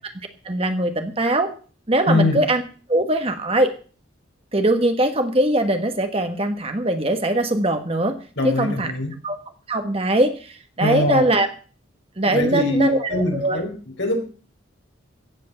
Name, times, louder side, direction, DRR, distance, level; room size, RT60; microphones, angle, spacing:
voice 1, 0.4-1.5 1.9-2.6 2.9-3.7 4.5-8.2 8.4-8.9 9.2-9.4 9.7-11.5 12.2-13.6, right 1 dB, 30° right, 7 dB, 1.3 m, -21 dB
voice 2, 2.1-2.4 8.4-9.1 10.8-11.2 12.2-13.7 14.0-14.2, left 1 dB, 65° left, 2 dB, 4.9 m, -22 dB
15.0 x 8.2 x 6.8 m, 0.39 s
head